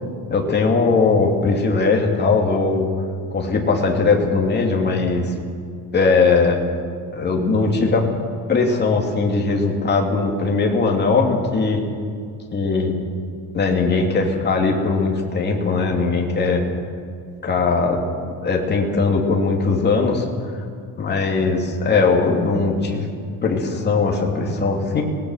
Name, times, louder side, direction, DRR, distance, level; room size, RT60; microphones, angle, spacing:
voice 1, 0.3-2.9 3.3-5.3 5.9-6.6 7.1-8.1 8.5-11.8 12.5-13.0 13.5-16.6 17.4-18.0 18.4-20.2 21.0-23.1 23.4-25.0, left 4 dB, 25° left, 0 dB, 2.8 m, -19 dB
24.5 x 19.0 x 6.5 m, 2.3 s
cardioid pair, 170°, 38 cm